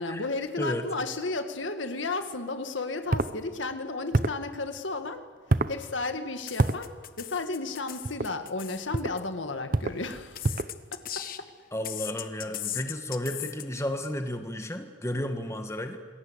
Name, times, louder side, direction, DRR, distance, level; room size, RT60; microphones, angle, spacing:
voice 1, 0.0-5.3 5.7-10.5 10.9-11.5, left 3 dB, 80° left, 7 dB, 1.8 m, -33 dB
sound 1, 3.1-3.3 4.1-4.4 5.5-5.8 6.6-6.8 8.0-8.3 8.9-9.2 9.7-10.0 10.4-10.8, right 2 dB, 45° right, 0.8 m, -26 dB
sound 2, 6.5-9.2 10.1-11.5 11.8-13.6, left 12 dB, 45° left, 1.3 m, -37 dB
voice 2, 11.7-16.0, left 1 dB, 15° left, 6 dB, 1.7 m, -32 dB
27.0 x 21.0 x 8.2 m, 1.5 s
head